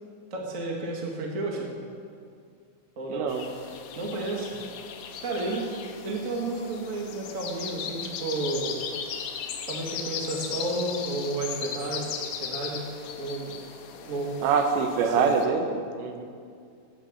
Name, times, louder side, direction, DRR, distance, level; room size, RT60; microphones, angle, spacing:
voice 1, 0.3-1.7 2.9-3.3 3.9-4.5 5.2-5.7 6.0-8.8 9.7-12.1 12.4-12.9 13.2-13.6 14.0-14.3 15.0-15.3, right 2 dB, 55° right, -1 dB, 0.8 m, -31 dB
voice 2, 3.1-3.4 14.4-16.2, right 5 dB, 75° right, 5 dB, 3.2 m, -25 dB
sound 1, 3.3-15.5, left 7 dB, 70° left, 2.4 m, -37 dB
13.5 x 9.1 x 8.4 m, 2.2 s
omnidirectional pair, 5.3 m